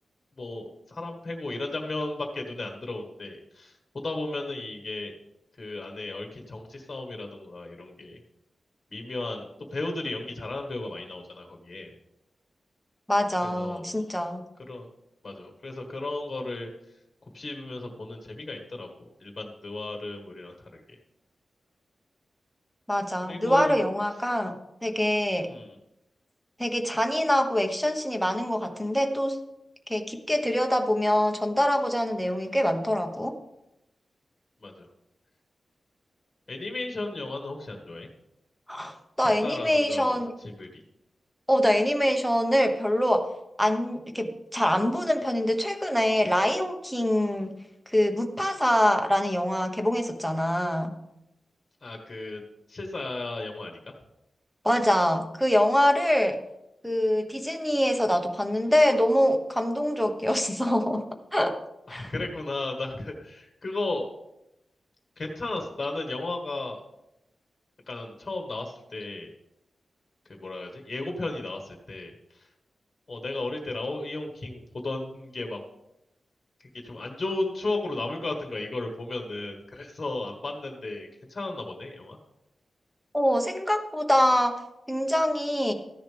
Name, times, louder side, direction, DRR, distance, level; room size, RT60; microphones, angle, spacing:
voice 1, 0.4-5.1 5.6-8.2 8.9-11.9 13.4-13.8 14.7-14.9 15.2-16.7 17.3-18.9 19.2-20.8 23.2-23.8 25.5-25.8 34.6-34.9 36.5-38.1 39.4-40.8 51.8-52.4 52.7-54.0 61.9-64.1 65.2-66.8 67.9-69.3 70.2-72.5 73.1-75.6 76.8-82.2, left 2 dB, 30° left, 3 dB, 1.6 m, -34 dB
voice 2, 13.1-14.4 22.9-24.5 24.8-25.5 26.6-29.4 29.9-33.4 38.7-40.3 41.5-43.3 43.6-47.5 47.9-50.9 54.6-56.4 56.8-61.0 61.3-61.6 61.9-62.1 83.1-85.7, equal, ahead, 4 dB, 1.1 m, -24 dB
14.5 x 10.5 x 3.4 m, 0.86 s
wide cardioid pair, 160°, 0 cm